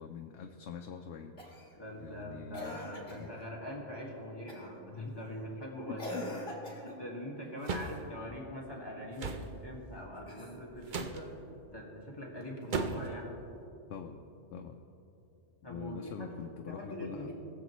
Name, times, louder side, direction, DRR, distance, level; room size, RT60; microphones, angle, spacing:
voice 1, 0.0-1.4 2.0-2.8 3.2-3.5 5.9-6.3 13.9-14.2 14.5-14.8 15.7-17.3, left 6 dB, 85° left, 4 dB, 0.9 m, -44 dB
Cough, 1.4-1.8 2.5-3.3 4.5-4.8 6.0-7.1 10.2-10.9 12.4-12.5, left 1 dB, 45° left, 1.8 m, -43 dB
voice 2, 1.8-6.0 6.8-11.3 11.7-13.3 15.6-17.3, equal, 20° left, -3 dB, 1.7 m, -43 dB
sound 1, 7.6-8.0 9.2-9.5 10.9-11.2 12.7-13.1, right 4 dB, 50° right, 0.7 m, -35 dB
19.5 x 7.4 x 3.0 m, 2.8 s
omnidirectional pair, 1.2 m